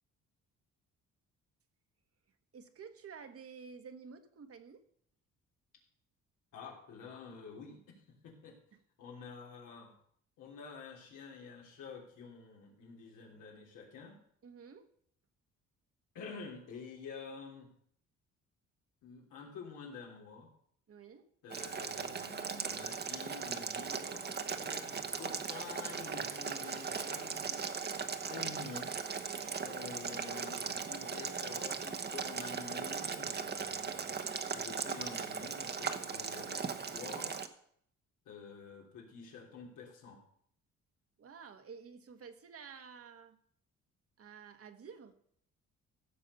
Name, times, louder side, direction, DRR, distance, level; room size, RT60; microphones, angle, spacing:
voice 1, 2.5-4.8 8.7-8.8 14.4-14.9 20.9-21.3 29.2-29.6 41.2-43.4 44.2-45.1, right 6 dB, 50° right, 8 dB, 1.4 m, -51 dB
voice 2, 6.5-8.6 9.0-9.9 10.4-14.2 16.1-17.7 19.0-20.5 21.4-27.6 28.0-29.0 29.6-34.1 34.5-37.4 38.2-40.2, left 5 dB, 85° left, 0 dB, 3.3 m, -49 dB
Boiling, 21.5-37.5, right 5 dB, 35° right, 1.0 m, -38 dB
15.5 x 6.5 x 5.5 m, 0.66 s
cardioid pair, 90°, 30 cm